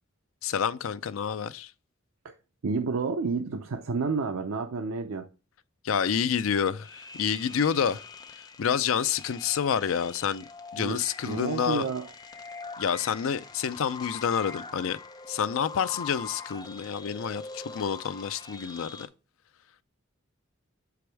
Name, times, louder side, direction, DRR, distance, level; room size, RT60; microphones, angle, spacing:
voice 1, 0.4-1.7 5.8-8.0 8.6-10.4 10.7-11.8 12.8-15.0 15.3-18.9, left 7 dB, 75° left, 0.4 m, -28 dB
voice 2, 2.6-5.3 10.8-11.0 11.3-12.1, right 4 dB, 85° right, 0.6 m, -30 dB
sound 1, 6.8-19.1, left 4 dB, 20° left, 0.6 m, -43 dB
6.9 x 4.7 x 3.3 m
head